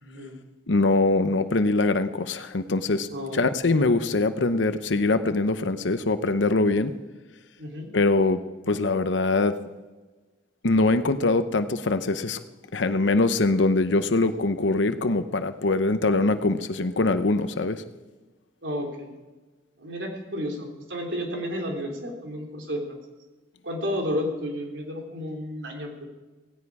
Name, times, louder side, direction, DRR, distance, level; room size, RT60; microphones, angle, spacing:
voice 1, 0.0-0.4 3.1-3.7 7.6-7.9 18.6-19.1 19.8-23.0 23.6-26.1, equal, 85° right, 1 dB, 3.4 m, -32 dB
voice 2, 0.7-6.9 7.9-8.4 8.7-9.5 10.6-12.4 12.7-17.8, left 2 dB, 85° left, 10 dB, 0.8 m, -23 dB
17.0 x 17.0 x 4.8 m, 1.2 s
head